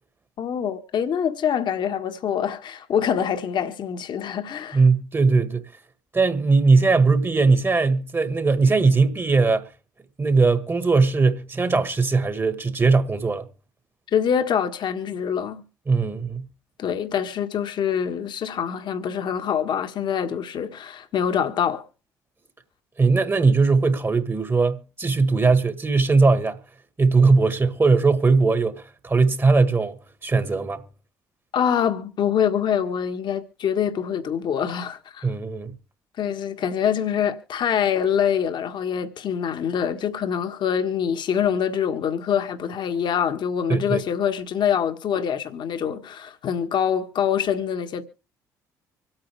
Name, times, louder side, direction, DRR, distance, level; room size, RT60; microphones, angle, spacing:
voice 1, 0.4-4.8 14.1-15.6 16.8-21.8 31.5-35.3 36.2-48.0, left 8 dB, 55° left, 1.5 m, -25 dB
voice 2, 4.7-5.6 6.1-9.7 10.2-13.5 15.9-16.4 23.0-26.6 27.0-30.8 35.2-35.8 43.7-44.0, right 4 dB, 25° right, 1.6 m, -19 dB
25.5 x 8.9 x 3.4 m
hypercardioid pair, 55°, 9 cm